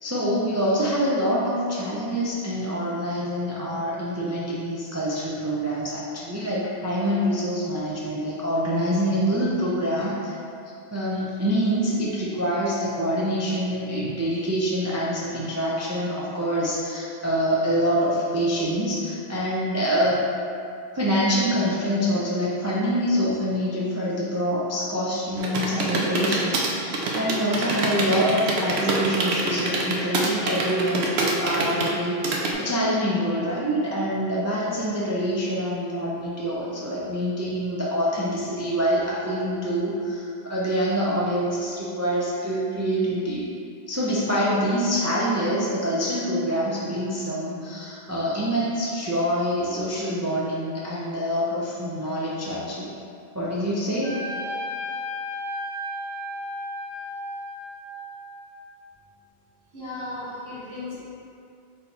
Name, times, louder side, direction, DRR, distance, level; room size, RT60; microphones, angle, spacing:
voice 1, 0.0-10.4 10.9-20.2 20.9-43.5 43.9-52.9 53.3-54.1, equal, 25° right, -7 dB, 0.3 m, -25 dB
sound 1, 25.4-32.5, right 3 dB, 80° right, 0.9 m, -25 dB
Trumpet, 54.0-58.7, left 1 dB, 65° left, 0.9 m, -34 dB
voice 2, 59.7-61.0, left 2 dB, 60° right, -10 dB, 1.5 m, -35 dB
4.3 x 2.7 x 4.2 m, 2.4 s
omnidirectional pair, 1.1 m